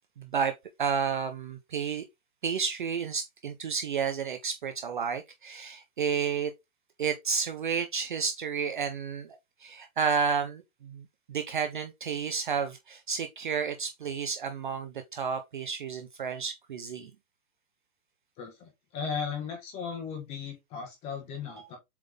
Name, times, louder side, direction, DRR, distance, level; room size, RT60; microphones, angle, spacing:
voice 1, 0.2-0.5 0.8-2.0 2.4-6.5 7.0-17.1 21.5-21.7, right 6 dB, 35° right, 0.6 m, -31 dB
voice 2, 18.4-21.8, left 6 dB, 15° left, 1.4 m, -36 dB
7.6 x 3.7 x 3.4 m
hypercardioid pair, 175°, 44 cm